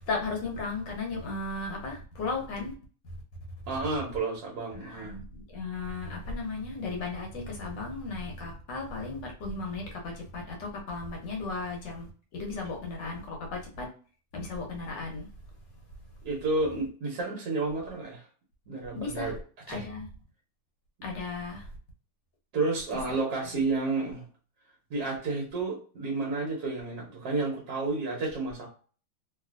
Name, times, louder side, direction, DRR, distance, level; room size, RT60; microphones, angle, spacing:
voice 1, 0.1-2.7 4.7-13.9 14.3-15.3 18.9-19.4 19.7-20.1 21.0-21.7, left 3 dB, 65° left, 1 dB, 1.3 m, -35 dB
voice 2, 3.7-5.1 16.2-18.3 18.7-19.4 19.7-19.8 22.5-24.2 24.9-28.7, right 3 dB, 60° right, -2 dB, 1.2 m, -31 dB
3.3 x 2.6 x 2.4 m, 0.40 s
omnidirectional pair, 2.4 m